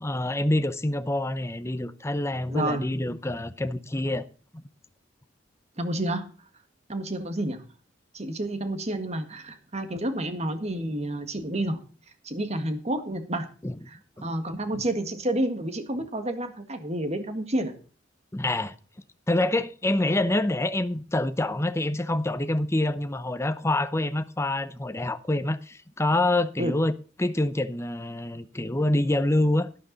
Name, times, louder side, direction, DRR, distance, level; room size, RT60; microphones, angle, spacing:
voice 1, 0.0-4.2 4.5-4.6 13.6-13.8 14.2-14.3 14.7-14.8 18.3-18.7 19.3-26.9 27.2-29.7, left 1 dB, 15° left, 0.7 m, -26 dB
voice 2, 2.5-2.8 5.8-6.3 6.9-7.6 8.1-11.8 12.2-13.5 13.9-17.8 26.6-26.7, right 1 dB, 35° right, 1.7 m, -29 dB
12.0 x 11.5 x 4.0 m
head